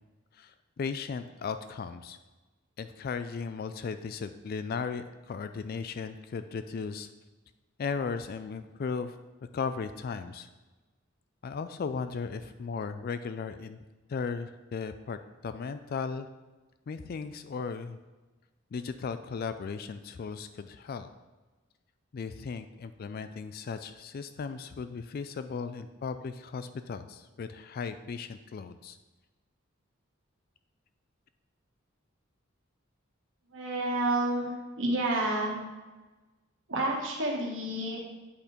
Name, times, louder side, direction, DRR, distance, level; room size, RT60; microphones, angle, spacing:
voice 1, 0.3-2.2 2.8-7.1 7.8-9.2 9.5-10.5 11.4-13.8 14.1-16.3 16.9-18.0 18.7-21.1 22.1-29.0, left 5 dB, 45° left, 10 dB, 0.3 m, -36 dB
voice 2, 33.5-34.5 34.8-35.6 36.7-38.0, right 1 dB, 65° right, -2 dB, 1.7 m, -29 dB
8.4 x 4.3 x 5.1 m, 1.2 s
head